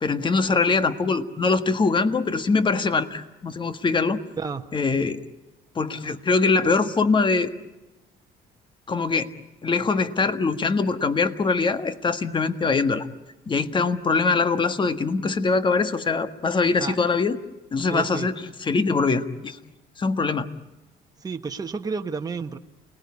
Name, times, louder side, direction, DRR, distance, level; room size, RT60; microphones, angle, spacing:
voice 1, 0.0-4.2 4.7-5.2 5.7-7.5 8.9-9.3 9.6-13.1 13.5-17.4 17.7-18.3 18.7-19.6 20.0-20.5, left 4 dB, 30° left, 1.6 m, -23 dB
voice 2, 4.4-4.7 16.8-17.0 17.9-18.3 21.2-22.6, right 4 dB, 20° right, 1.4 m, -31 dB
29.5 x 19.5 x 9.7 m
cardioid pair, 110°, 17 cm